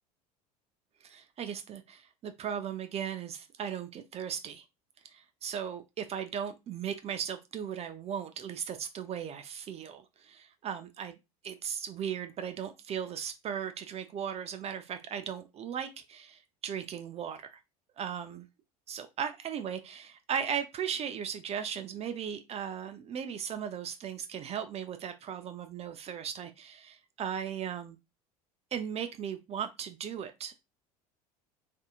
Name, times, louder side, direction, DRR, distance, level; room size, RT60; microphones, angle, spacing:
voice 1, 1.0-4.6 5.1-11.2 11.4-17.6 18.0-18.5 18.9-28.0 28.7-30.6, right 8 dB, 30° right, 0.5 m, -37 dB
3.4 x 2.7 x 2.4 m
hypercardioid pair, 75°, 20 cm